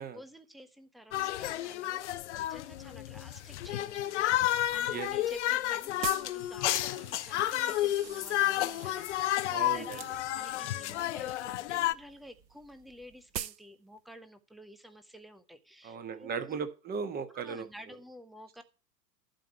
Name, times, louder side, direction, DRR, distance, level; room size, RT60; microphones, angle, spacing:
voice 1, 0.0-10.0 10.3-16.6 17.3-18.6, equal, ahead, 10 dB, 0.5 m, -51 dB
sound 1, 1.1-11.9, left 14 dB, 45° left, 0.7 m, -31 dB
sound 2, 3.1-13.4, right 7 dB, 40° right, 2.7 m, -58 dB
sound 3, 4.5-7.4 9.8-10.5 10.8-11.4 11.6-11.8 12.1-12.2 12.4-12.5 12.8-12.9 13.3-13.7 14.0-14.1, right 9 dB, 80° right, 0.6 m, -40 dB
voice 2, 9.5-10.1 15.8-18.0, right 6 dB, 20° right, 9 dB, 1.4 m, -37 dB
12.0 x 5.0 x 8.2 m, 0.31 s
figure-of-eight pair, 95°, 49 cm